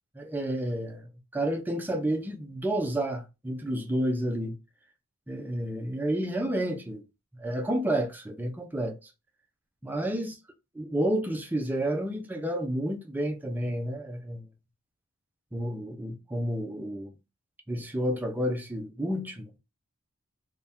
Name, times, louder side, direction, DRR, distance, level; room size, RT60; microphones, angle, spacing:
voice 1, 0.2-4.6 5.3-7.0 7.4-9.1 9.8-10.4 10.7-14.4 15.5-17.1 17.7-19.5, right 1 dB, 10° right, 0.4 m, -30 dB
2.5 x 2.2 x 3.4 m
head